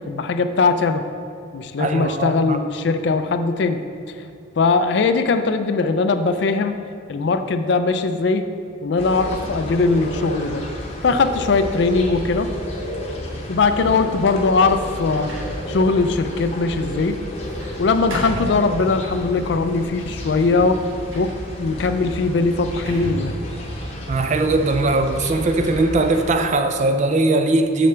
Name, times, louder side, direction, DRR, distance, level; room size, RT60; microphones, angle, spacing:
voice 1, 0.1-1.0 1.5-3.8 4.6-6.7 7.1-8.4 8.8-10.6 11.0-12.5 13.5-15.3 15.7-17.2 17.8-20.8 21.1-21.3 21.6-23.4, left 4 dB, 60° left, 9 dB, 0.4 m, -20 dB
voice 2, 1.8-2.6 24.1-27.9, right 2 dB, 35° right, 7 dB, 0.4 m, -19 dB
sound 1, 9.0-26.3, equal, 30° left, 0.8 m, -31 dB
Sliding door, 14.8-19.3 19.9-24.8, equal, 80° right, 1.2 m, -37 dB
6.8 x 6.7 x 3.3 m, 2.5 s
head